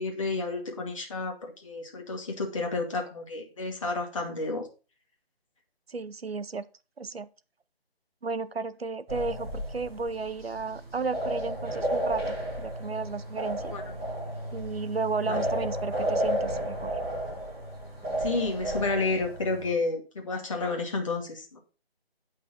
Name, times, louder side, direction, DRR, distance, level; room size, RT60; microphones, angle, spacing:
voice 1, 0.0-4.7 13.7-14.0 15.2-15.4 18.2-21.6, left 3 dB, 30° left, 1.6 m, -31 dB
voice 2, 5.9-6.6 7.0-7.3 8.2-13.7 14.5-16.9, right 4 dB, 70° right, 0.8 m, -33 dB
sound 1, 9.1-19.7, equal, 5° right, 2.0 m, -32 dB
8.7 x 5.4 x 5.5 m
figure-of-eight pair, 155°, 31 cm